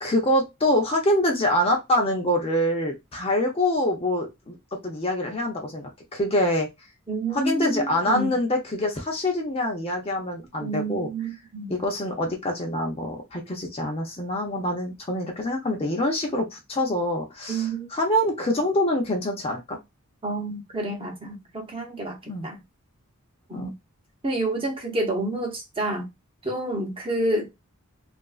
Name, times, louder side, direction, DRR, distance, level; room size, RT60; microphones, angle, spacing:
voice 1, 0.0-4.6 4.8-6.7 7.3-11.1 11.7-19.8 22.3-22.5 23.5-23.7, left 1 dB, 25° left, 0.6 m, -25 dB
voice 2, 7.1-8.3 10.6-11.8 17.5-17.9 20.2-22.6 23.5-23.7 24.2-26.1 26.4-27.5, right 2 dB, 25° right, 0.8 m, -29 dB
2.9 x 2.5 x 2.3 m
head